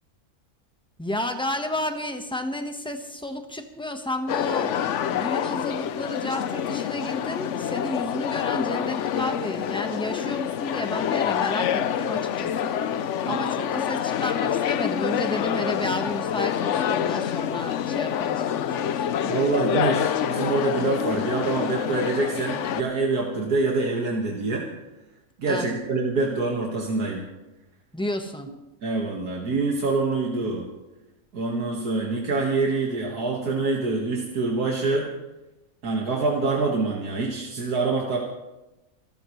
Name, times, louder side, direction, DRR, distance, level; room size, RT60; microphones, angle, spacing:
voice 1, 1.0-19.1 25.5-25.7 27.9-28.5, left 1 dB, 5° left, 5 dB, 1.2 m, -32 dB
sound 1, 4.3-22.8, left 9 dB, 60° left, 0.9 m, -27 dB
voice 2, 19.2-24.7 25.4-27.3 28.8-30.7 31.3-35.1 35.8-38.2, right 3 dB, 90° right, -1 dB, 2.3 m, -25 dB
27.0 x 13.5 x 3.2 m, 1.0 s
omnidirectional pair, 1.6 m